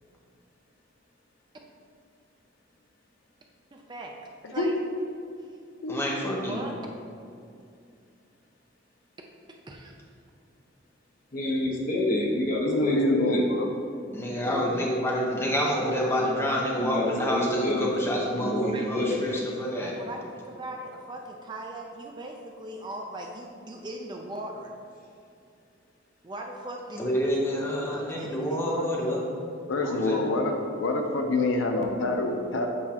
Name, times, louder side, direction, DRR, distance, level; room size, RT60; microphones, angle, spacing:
voice 1, 3.7-4.2 4.5-4.8 6.2-6.7 9.7-10.0 18.7-18.9 19.8-24.7 26.2-27.0 27.5-29.4 29.8-30.0, right 1 dB, 20° right, 1 dB, 0.4 m, -39 dB
voice 2, 5.9-6.6 14.1-19.9 27.0-29.2 29.9-30.2, equal, 10° left, -3 dB, 0.8 m, -28 dB
voice 3, 11.3-13.5 16.8-17.9 18.3-19.2, left 1 dB, 45° left, -3 dB, 1.1 m, -28 dB
voice 4, 12.6-13.7 14.4-14.6 29.7-30.5 30.8-32.7, left 2 dB, 75° left, 3 dB, 0.6 m, -26 dB
8.0 x 4.8 x 2.9 m, 2.4 s
head